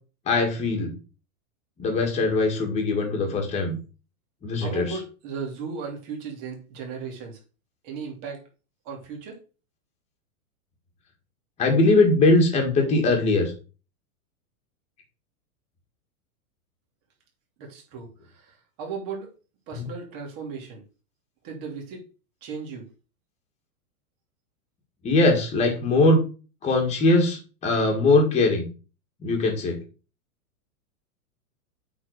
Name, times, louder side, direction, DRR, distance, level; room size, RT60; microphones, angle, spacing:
voice 1, 0.3-0.9 1.8-3.8 4.4-4.9 11.6-13.5 19.7-19.9 25.0-26.2 26.6-28.7 29.2-29.8, left 2 dB, 15° left, 2 dB, 2.1 m, -21 dB
voice 2, 4.6-7.4 7.8-8.4 8.8-9.4 17.6-19.3 19.7-20.8 21.4-22.0 22.4-22.9, right 5 dB, 35° right, 1 dB, 2.8 m, -36 dB
8.6 x 4.5 x 6.6 m, 0.34 s
supercardioid pair, 165°, 45 cm